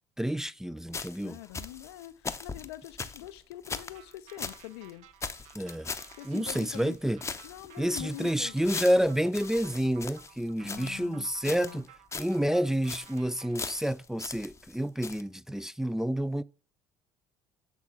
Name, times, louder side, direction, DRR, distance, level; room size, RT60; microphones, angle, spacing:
voice 1, 0.2-1.4 5.6-5.9 6.2-7.2 7.8-11.9 12.1-16.4, equal, 5° right, 0.3 m, -29 dB
sound 1, 0.9-4.6 4.9-5.0 5.2-7.0 7.2-11.1 11.4-11.9 12.1-12.4 12.7-13.2 13.5-14.8 15.0-15.2, left 4 dB, 20° left, 0.7 m, -40 dB
voice 2, 1.2-5.1 6.1-7.0 7.4-8.9 10.6-11.8, left 15 dB, 85° left, 0.5 m, -44 dB
sound 2, 3.7-13.8, right 11 dB, 65° right, 0.6 m, -56 dB
8.2 x 3.5 x 5.8 m
hypercardioid pair, 65°, 13 cm